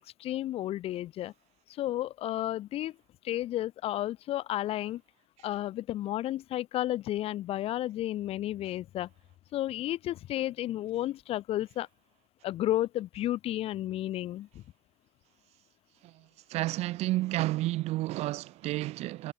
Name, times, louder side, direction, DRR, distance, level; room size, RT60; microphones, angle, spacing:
voice 1, 0.0-1.3 1.8-2.9 3.2-5.0 5.4-9.1 9.5-11.9 12.4-14.5, left 14 dB, 65° left, 0.5 m, -32 dB
voice 2, 16.0-19.3, right 17 dB, 85° right, 0.7 m, -31 dB
cardioid pair, 115°, 11 cm